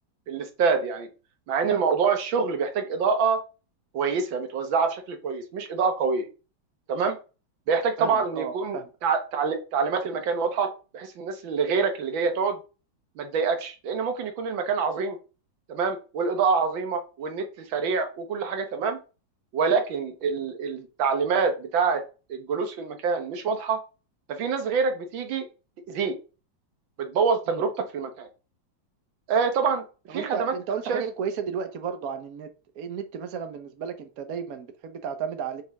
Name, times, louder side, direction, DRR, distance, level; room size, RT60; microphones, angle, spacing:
voice 1, 0.3-1.1 1.5-3.4 3.9-6.3 6.9-7.2 7.7-10.7 10.9-12.6 13.2-15.2 15.7-19.0 19.5-22.0 22.3-23.8 24.3-25.5 25.9-26.2 27.0-28.3 29.3-29.8 30.1-30.5 30.9-31.0, right 5 dB, 80° right, 1.9 m, -26 dB
voice 2, 8.0-8.9 27.5-27.6 30.1-32.5 32.7-35.6, right 7 dB, 55° right, 1.3 m, -33 dB
7.9 x 4.9 x 3.5 m
omnidirectional pair, 2.1 m